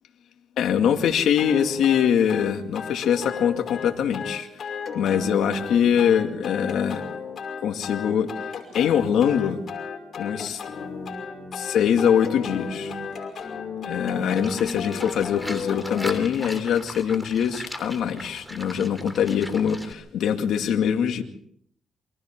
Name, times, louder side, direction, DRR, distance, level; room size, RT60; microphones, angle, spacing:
voice 1, 0.6-4.7 4.9-7.0 7.6-8.4 8.7-9.6 10.2-10.6 11.5-13.0 13.8-21.2, left 8 dB, 75° left, 5 dB, 2.3 m, -23 dB
sound 1, 1.4-16.1, left 5 dB, 55° left, 5.5 m, -34 dB
Livestock farm animals working animals, 14.3-19.9, equal, ahead, 3.3 m, -38 dB
28.0 x 24.5 x 3.7 m, 0.66 s
cardioid pair, 90°, 0 cm